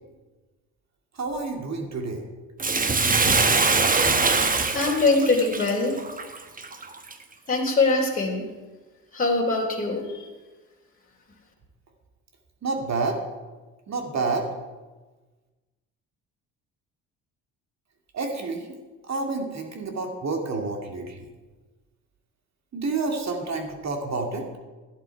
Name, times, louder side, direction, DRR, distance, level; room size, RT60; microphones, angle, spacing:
voice 1, 1.1-2.2 12.6-13.2 13.9-14.5 18.1-18.7 19.1-21.3 22.7-24.5, right 3 dB, 45° right, 3 dB, 2.5 m, -29 dB
Bathtub (filling or washing), 2.6-7.1 7.7-7.8, right 4 dB, 20° right, 1.1 m, -23 dB
voice 2, 4.7-6.0 7.5-8.4 9.1-10.3, left 3 dB, 20° left, -2 dB, 3.0 m, -23 dB
12.5 x 10.5 x 4.7 m, 1.3 s
supercardioid pair, 70°, 37 cm